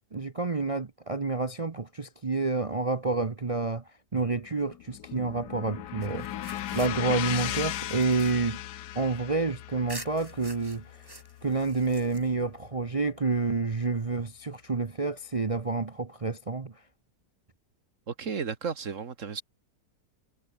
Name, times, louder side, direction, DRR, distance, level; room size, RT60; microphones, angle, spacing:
voice 1, 0.1-3.8 4.1-6.3 6.7-8.6 8.9-10.8 11.4-16.8, right 3 dB, 30° right, 0.6 m, -29 dB
sound 1, 4.5-12.7, left 13 dB, 85° left, 1.3 m, -37 dB
sound 2, 6.0-9.4 9.9-12.6, right 1 dB, 15° right, 3.5 m, -48 dB
voice 2, 18.1-19.4, right 6 dB, 50° right, 1.7 m, -33 dB
omnidirectional pair, 1.7 m